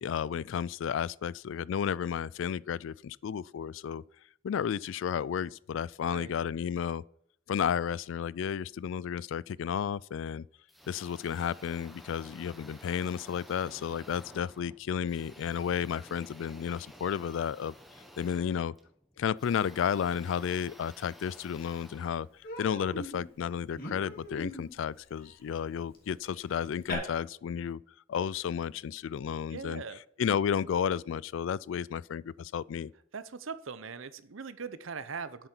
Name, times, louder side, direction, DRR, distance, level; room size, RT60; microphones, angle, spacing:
voice 1, 0.0-4.0 4.4-7.0 7.5-10.4 10.9-17.7 18.2-18.7 19.2-22.3 22.6-27.8 28.1-29.8 30.2-32.9, left 8 dB, 65° left, 0.3 m, -32 dB
voice 2, 6.1-6.4 29.5-30.0 33.1-35.5, right 5 dB, 75° right, 0.7 m, -40 dB
sound 1, 10.7-22.9, equal, ahead, 1.1 m, -53 dB
Human voice, 21.4-21.5 21.8-22.0 22.4-26.9, left 1 dB, 45° left, 2.7 m, -43 dB
10.5 x 8.0 x 4.5 m
head